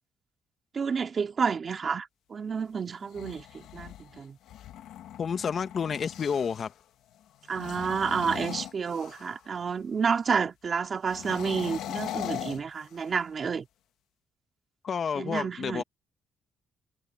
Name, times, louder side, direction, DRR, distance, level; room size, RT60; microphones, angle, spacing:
voice 1, 0.7-4.4 7.5-13.6 15.1-15.8, right 6 dB, 45° right, 2.9 m, -30 dB
sound 1, 2.9-6.7 7.4-9.5 11.0-13.3, left 12 dB, 85° left, 1.4 m, -40 dB
voice 2, 5.2-6.7 14.8-15.8, left 6 dB, 50° left, 1.4 m, -30 dB
cardioid pair, 90°, 0 cm